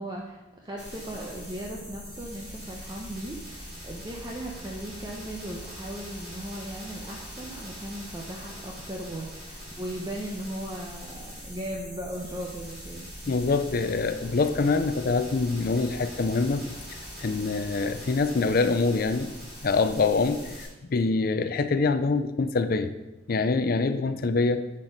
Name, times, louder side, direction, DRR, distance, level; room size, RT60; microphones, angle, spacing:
voice 1, 0.0-13.1, right 1 dB, 20° right, -1 dB, 0.8 m, -37 dB
sound 1, 0.8-20.6, equal, 5° right, 3.0 m, -42 dB
voice 2, 13.3-16.6 17.2-19.3 19.6-22.9 23.3-24.6, left 3 dB, 50° left, 9 dB, 0.4 m, -25 dB
9.9 x 4.4 x 5.1 m, 1.0 s
head